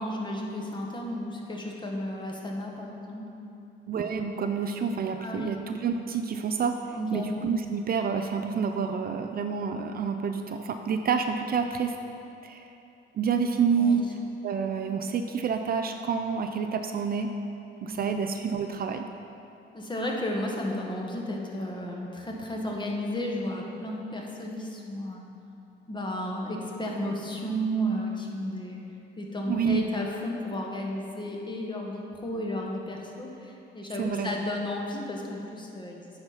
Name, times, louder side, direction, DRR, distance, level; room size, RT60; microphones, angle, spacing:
voice 1, 0.0-3.6 5.2-5.5 6.9-7.3 13.8-14.0 17.8-18.1 19.7-25.2 25.9-28.8 29.2-36.0, equal, 25° left, -1 dB, 1.2 m, -33 dB
voice 2, 3.9-11.9 12.4-12.7 13.1-14.0 14.4-17.3 17.8-19.1 29.5-29.8 34.0-34.3, right 6 dB, 50° right, 6 dB, 0.4 m, -28 dB
9.7 x 4.3 x 4.1 m, 2.7 s
cardioid pair, 90°, 20 cm